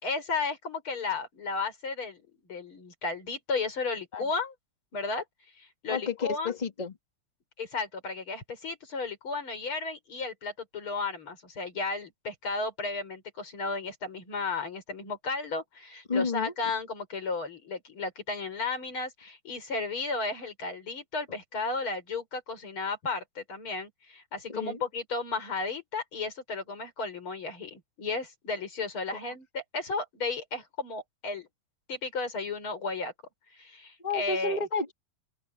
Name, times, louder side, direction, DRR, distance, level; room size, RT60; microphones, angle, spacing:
voice 1, 0.0-2.2 2.5-4.5 4.9-5.2 5.6-6.5 7.6-31.5 31.9-33.1 33.5-34.6, left 4 dB, 35° left, 5.9 m, -34 dB
voice 2, 5.9-7.0 16.1-16.5 24.5-24.8 29.1-29.3 34.0-34.9, left 4 dB, 15° left, 1.8 m, -31 dB
open air
omnidirectional pair, 4.2 m